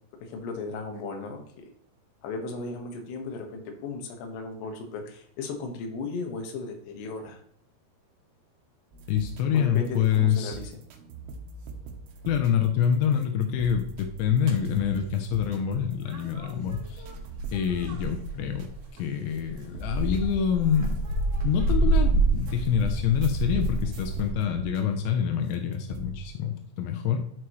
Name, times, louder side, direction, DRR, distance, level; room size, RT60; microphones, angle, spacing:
voice 1, 0.2-1.7 2.2-7.4 9.5-10.7, left 3 dB, 75° left, 3 dB, 3.3 m, -36 dB
sound 1, 8.9-18.8 19.3-21.9 22.4-26.3, right 3 dB, 75° right, 3.0 m, -44 dB
voice 2, 9.1-10.6 12.3-17.1 17.5-21.0 21.4-27.3, left 8 dB, 90° left, 5 dB, 3.1 m, -26 dB
sound 2, 14.5-14.7 16.1-19.0 19.4-24.3, right 2 dB, 50° right, 2.2 m, -27 dB
12.0 x 4.8 x 3.1 m, 0.67 s
omnidirectional pair, 5.1 m